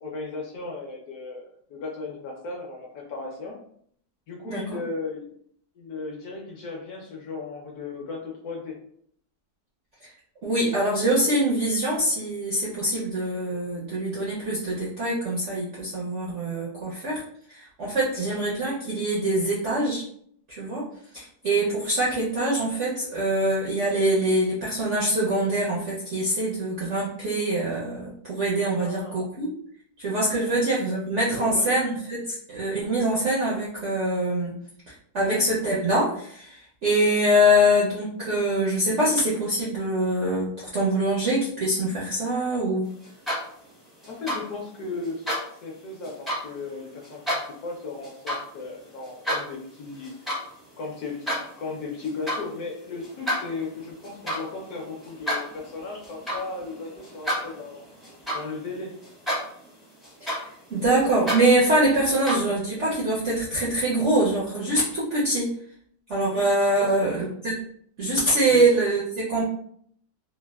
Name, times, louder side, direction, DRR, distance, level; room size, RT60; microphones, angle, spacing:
voice 1, 0.0-3.6 4.3-5.3 5.7-8.8 18.2-18.4 28.7-29.2 30.4-30.6 31.3-31.7 35.2-35.4 44.1-45.3 45.6-50.1 50.7-57.8 58.3-59.0 60.7-61.0 66.3-66.4 66.8-67.2 68.5-68.7, left 3 dB, 70° left, -1 dB, 1.0 m, -36 dB
voice 2, 10.4-17.2 17.5-20.0 20.5-20.8 21.1-29.5 30.0-34.5 34.9-42.9 60.2-60.4 60.7-65.5 66.1-67.5 68.0-69.5, right 1 dB, 70° right, -6 dB, 0.7 m, -24 dB
sound 1, 43.0-43.7 44.0-44.4 45.0-45.4 46.0-46.4 47.0-47.4 48.0-48.4 48.8-49.4 49.9-50.5 50.8-51.4 52.0-52.4 53.0-58.8 59.0-59.7 60.0-62.4, equal, ahead, 0.4 m, -31 dB
3.2 x 2.1 x 2.2 m, 0.64 s
omnidirectional pair, 1.9 m